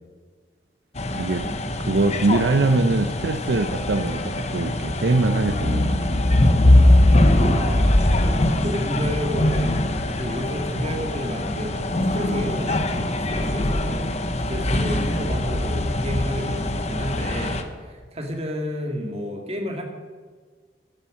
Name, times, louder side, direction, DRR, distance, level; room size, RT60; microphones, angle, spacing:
sound 1, 1.0-17.6, left 1 dB, 40° left, 0.9 m, -22 dB
voice 1, 1.1-1.5 1.8-6.0, right 3 dB, 75° right, 8 dB, 0.6 m, -22 dB
voice 2, 7.3-8.0 8.6-19.8, equal, 35° right, 3 dB, 1.9 m, -31 dB
10.0 x 10.0 x 7.2 m, 1.5 s
head